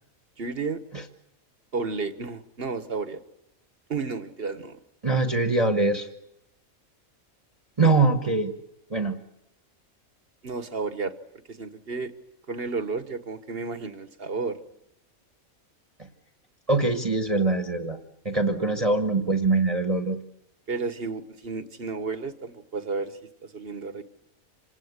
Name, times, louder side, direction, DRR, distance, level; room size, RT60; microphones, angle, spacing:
voice 1, 0.4-0.8 1.7-3.2 3.9-4.8 10.4-11.2 11.5-12.1 12.5-14.6 20.7-24.0, right 4 dB, 45° right, 11 dB, 1.6 m, -32 dB
voice 2, 5.0-6.1 7.8-8.5 8.9-9.2 16.7-18.0 18.2-20.2, right 3 dB, 25° right, 6 dB, 1.6 m, -23 dB
27.0 x 19.0 x 8.3 m, 0.85 s
omnidirectional pair, 1.5 m